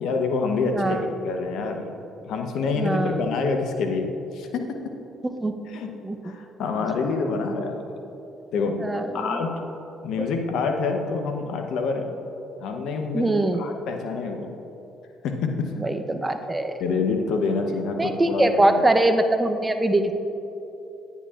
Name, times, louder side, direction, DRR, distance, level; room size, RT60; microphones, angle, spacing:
voice 1, 0.0-1.9 2.2-4.6 5.7-5.9 6.2-8.0 8.5-8.7 9.1-9.5 10.0-12.1 12.6-14.5 15.2-15.7 16.8-18.9, left 4 dB, 70° left, 4 dB, 0.8 m, -27 dB
voice 2, 0.7-1.0 2.7-3.2 5.4-5.5 6.0-6.2 8.8-9.4 13.1-13.6 15.8-16.8 18.0-20.1, right 1 dB, 20° right, 7 dB, 0.7 m, -22 dB
10.0 x 9.9 x 2.4 m, 3.0 s
hypercardioid pair, 55°, 0 cm